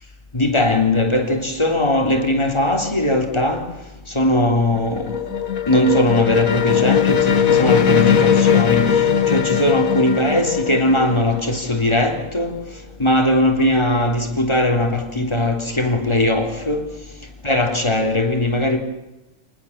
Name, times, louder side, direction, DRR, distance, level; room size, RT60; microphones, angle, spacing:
voice 1, 0.3-3.6 4.2-5.1 5.7-9.0 9.3-12.6 13.0-16.8 17.4-18.8, left 1 dB, 20° left, 3.5 m, -19 dB
sound 1, 4.5-12.1, left 8 dB, 85° left, 1.8 m, -19 dB
28.0 x 20.0 x 7.4 m
omnidirectional pair, 1.4 m